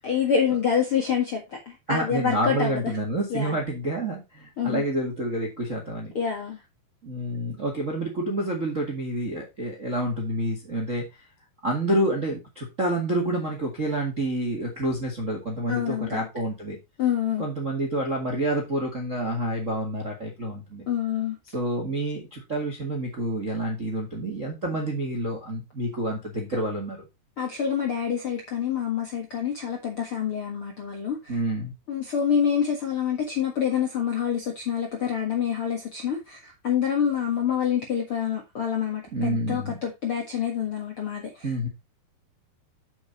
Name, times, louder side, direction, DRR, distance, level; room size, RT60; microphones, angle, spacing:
voice 1, 0.0-2.9 3.3-3.6 4.6-4.8 6.1-6.6 15.7-16.3 17.0-17.5 20.9-21.4 27.4-31.4 31.9-41.5, left 8 dB, 55° left, 1.6 m, -27 dB
voice 2, 1.9-6.1 7.0-11.0 11.6-16.8 17.4-20.9 21.5-27.0 31.3-31.7 39.1-39.8 41.4-41.7, right 1 dB, 35° right, 1.2 m, -28 dB
7.5 x 7.2 x 4.1 m
omnidirectional pair, 4.8 m